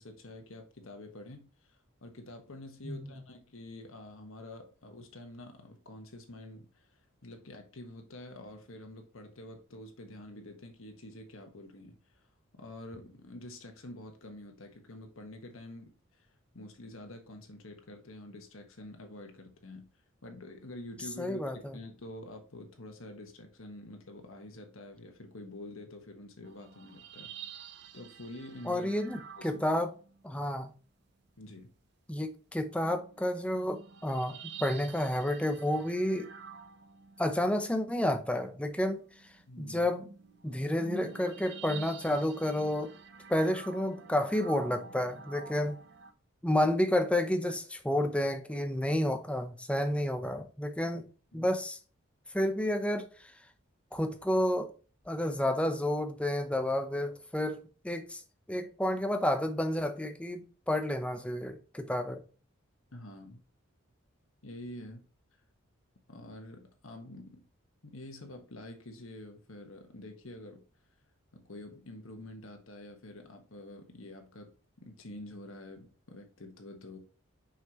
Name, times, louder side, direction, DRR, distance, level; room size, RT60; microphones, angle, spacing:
voice 1, 0.0-12.3 12.6-16.3 16.5-19.8 20.2-27.3 27.9-28.9 29.4-29.6 31.4-31.7 39.5-39.9 51.3-51.5 62.9-63.4 64.4-65.0 66.1-67.4 67.8-70.6 71.3-74.5 74.8-77.0, left 1 dB, 75° left, 1.3 m, -47 dB
voice 2, 2.8-3.2 21.2-21.7 28.7-29.9 30.2-30.7 32.1-36.3 37.2-39.0 39.6-40.1 40.4-42.9 43.3-45.8 46.4-51.1 51.3-51.8 52.3-53.3 53.9-54.7 55.1-58.2 58.5-62.2, left 1 dB, 5° left, 0.7 m, -30 dB
sound 1, 26.4-30.4 32.7-46.1, right 6 dB, 55° right, 0.7 m, -49 dB
6.1 x 5.6 x 3.0 m
head